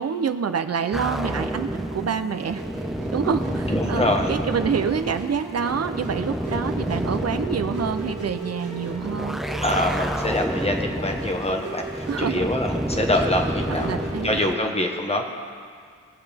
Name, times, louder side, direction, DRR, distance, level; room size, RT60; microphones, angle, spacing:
voice 1, 0.0-2.6 3.1-9.4 12.1-12.5 13.7-14.4, right 6 dB, 50° right, 9 dB, 0.6 m, -27 dB
Musical instrument, 0.8-14.6, right 4 dB, 65° right, 2.0 m, -37 dB
sound 1, 0.9-14.5, equal, ahead, 0.4 m, -30 dB
voice 2, 3.7-4.3 9.6-14.0 14.2-15.2, left 1 dB, 20° left, 3 dB, 1.1 m, -25 dB
20.0 x 7.7 x 3.5 m, 2.1 s
wide cardioid pair, 105°, 32 cm